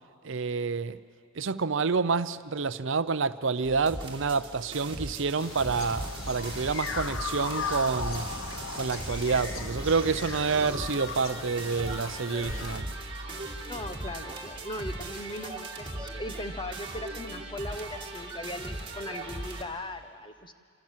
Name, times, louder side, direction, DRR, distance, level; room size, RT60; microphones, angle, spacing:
voice 1, 0.2-1.0 1.3-8.3 8.8-12.9, right 4 dB, 60° right, 13 dB, 0.7 m, -28 dB
sound 1, 3.6-19.6, right 2 dB, 25° right, 2.4 m, -38 dB
sound 2, 5.4-12.8, left 4 dB, 70° left, 1.1 m, -37 dB
voice 2, 13.7-20.5, left 1 dB, 20° left, 8 dB, 1.2 m, -39 dB
27.5 x 25.5 x 7.5 m, 2.3 s
head